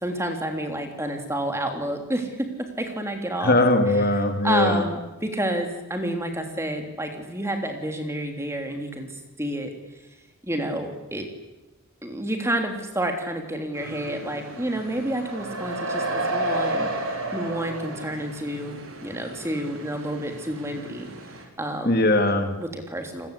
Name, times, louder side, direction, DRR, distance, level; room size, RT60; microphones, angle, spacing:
voice 1, 0.0-2.2 2.8-3.6 4.4-9.1 9.4-9.7 10.5-11.2 12.0-16.9 17.3-18.8 19.0-21.1 21.6-22.0 22.6-23.3, right 1 dB, 10° right, 4 dB, 3.3 m, -29 dB
voice 2, 3.4-4.8 21.8-22.6, left 2 dB, 45° left, 6 dB, 2.5 m, -20 dB
sound 1, 13.7-21.4, right 1 dB, 70° right, 5.1 m, -32 dB
30.0 x 20.0 x 8.5 m, 1.0 s
head